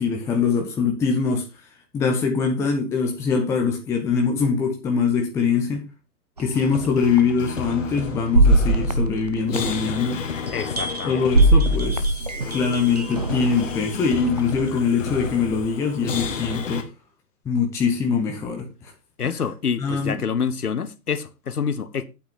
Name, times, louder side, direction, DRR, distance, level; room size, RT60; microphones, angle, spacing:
voice 1, 0.0-1.4 1.9-5.8 6.4-10.2 11.1-16.9 17.4-18.9 19.8-20.2, left 5 dB, 5° left, 0.8 m, -23 dB
sound 1, 6.4-6.5 7.2-7.3 8.3-10.0 10.5-13.6 14.4-14.5, right 2 dB, 30° right, 0.4 m, -20 dB
sound 2, 6.5-16.8, left 6 dB, 50° left, 1.7 m, -32 dB
voice 2, 10.5-11.2 19.2-22.0, left 6 dB, 65° left, 1.0 m, -27 dB
9.1 x 8.1 x 3.8 m
figure-of-eight pair, 120°, 48 cm